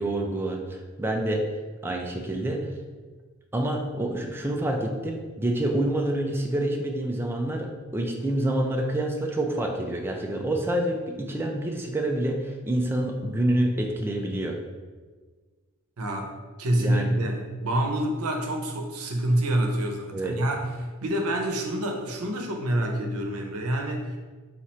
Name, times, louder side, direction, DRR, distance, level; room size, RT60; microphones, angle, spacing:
voice 1, 0.0-1.5 1.8-2.7 3.5-14.6 16.8-17.1 20.1-20.4, right 1 dB, 10° right, 2 dB, 0.3 m, -27 dB
voice 2, 16.0-20.7 21.0-24.2, right 1 dB, 80° right, 2 dB, 0.7 m, -27 dB
4.2 x 2.4 x 4.3 m, 1.4 s
head